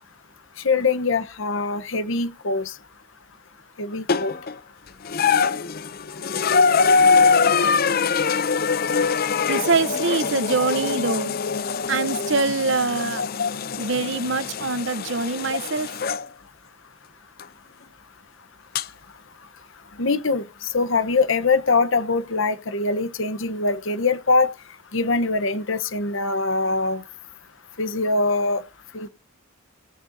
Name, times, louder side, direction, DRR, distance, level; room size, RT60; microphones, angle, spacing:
voice 1, 0.6-2.7 3.8-4.3 13.4-13.5 15.5-15.6 20.0-24.5 24.9-27.0 27.8-28.6 28.9-29.1, left 3 dB, 65° left, 0.9 m, -23 dB
sound 1, 4.1-4.5 5.0-16.2 17.4-17.5 18.7-18.8, left 5 dB, 45° left, 0.5 m, -23 dB
voice 2, 9.5-11.3 11.9-13.2 13.8-15.9, right 4 dB, 55° right, 0.9 m, -24 dB
18.5 x 9.6 x 2.7 m
head